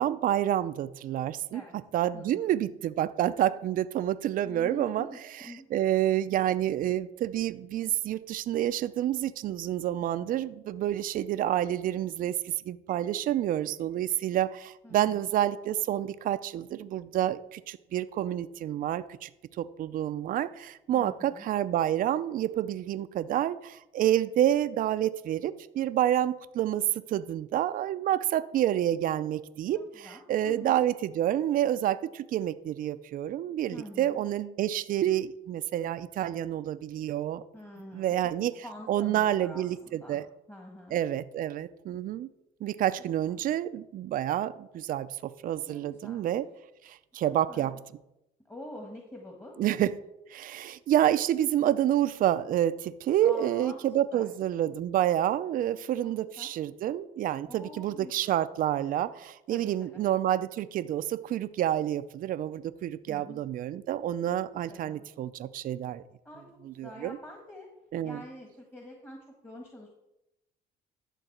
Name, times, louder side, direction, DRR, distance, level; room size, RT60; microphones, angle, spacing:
voice 1, 0.0-1.6 1.9-5.1 5.4-19.3 19.6-37.4 37.9-38.5 38.9-40.3 40.9-42.3 42.6-46.5 46.8-47.8 49.6-49.9 50.3-66.0 66.6-67.2 67.9-68.2, right 12 dB, 55° right, 13 dB, 0.5 m, -28 dB
voice 2, 2.1-2.6 4.4-5.7 14.8-15.3 20.9-21.5 30.0-30.8 33.7-34.2 37.5-40.2 40.5-41.0 43.3-43.4 45.7-46.3 47.1-47.8 48.4-49.6 53.2-53.8 54.1-54.3 56.0-56.5 57.5-58.1 59.5-60.0 63.1-63.4 64.7-65.0 66.2-66.4 66.8-67.7 68.0-69.9, equal, 15° left, 1 dB, 1.6 m, -46 dB
11.5 x 3.9 x 7.9 m, 0.89 s
cardioid pair, 110°, 17 cm